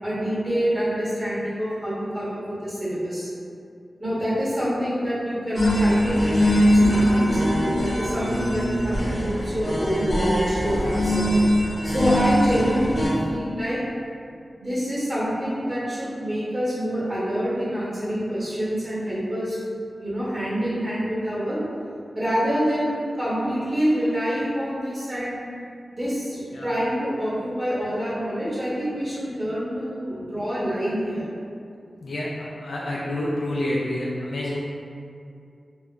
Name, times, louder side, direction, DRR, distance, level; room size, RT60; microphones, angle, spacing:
voice 1, 0.0-3.3 4.0-11.3 11.8-13.8 14.6-19.6 20.0-21.6 22.1-25.4 25.9-31.2, equal, 20° right, -9 dB, 0.9 m, -26 dB
sound 1, 5.5-13.1, equal, 35° left, 0.7 m, -22 dB
voice 2, 32.0-34.6, left 1 dB, 70° left, -5 dB, 0.3 m, -28 dB
2.1 x 2.0 x 3.6 m, 2.4 s
wide cardioid pair, 85°, 0 cm